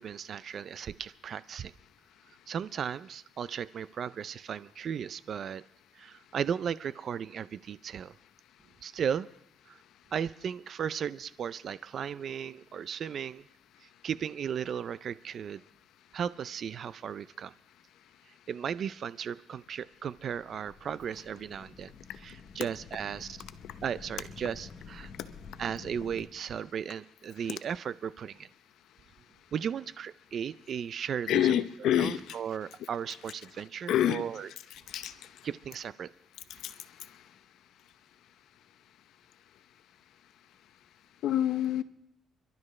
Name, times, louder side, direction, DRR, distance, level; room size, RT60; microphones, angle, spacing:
voice 1, 0.0-1.7 2.5-5.6 6.0-8.1 8.8-9.3 9.7-9.8 10.1-13.4 13.8-15.6 16.1-17.5 18.5-21.9 22.2-23.4 23.8-25.1 25.6-28.5 29.5-31.5 32.0-34.5 35.4-36.1, right 8 dB, 60° right, 0.5 m, -36 dB
sound 1, 19.9-26.3, left 5 dB, 55° left, 1.2 m, -50 dB
voice 2, 31.3-32.4 33.9-34.2 34.7-35.1 36.6-36.7 41.2-41.8, left 11 dB, 80° left, 0.7 m, -27 dB
30.0 x 12.0 x 3.2 m
cardioid pair, 90°, 0 cm